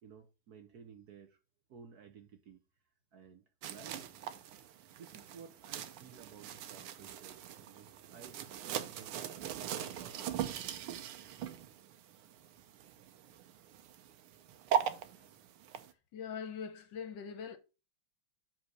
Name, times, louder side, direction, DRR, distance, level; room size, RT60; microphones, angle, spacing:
voice 1, 0.0-1.4 1.7-2.6 3.1-4.7 5.0-10.7, right 7 dB, 60° right, 1.1 m, -55 dB
sound 1, 3.6-15.9, right 9 dB, 85° right, 1.7 m, -40 dB
voice 2, 16.1-17.6, left 7 dB, 65° left, 1.3 m, -42 dB
7.6 x 4.0 x 6.2 m
omnidirectional pair, 2.4 m